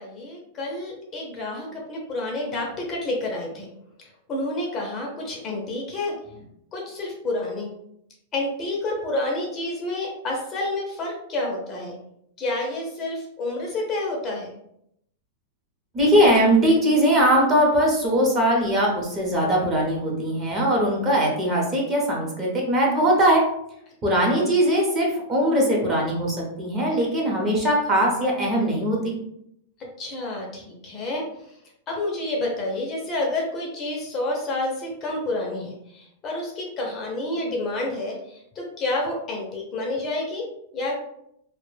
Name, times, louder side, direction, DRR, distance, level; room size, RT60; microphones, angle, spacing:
voice 1, 0.0-3.7 4.0-6.1 6.7-7.7 8.3-12.0 12.4-14.5 24.2-24.5 30.0-31.2 31.9-40.5 40.7-40.9, left 2 dB, 25° left, -1 dB, 0.5 m, -29 dB
voice 2, 15.9-23.4 24.0-29.2, right 1 dB, 20° right, -2 dB, 0.7 m, -20 dB
2.1 x 2.1 x 3.1 m, 0.76 s
supercardioid pair, 145°, 0 cm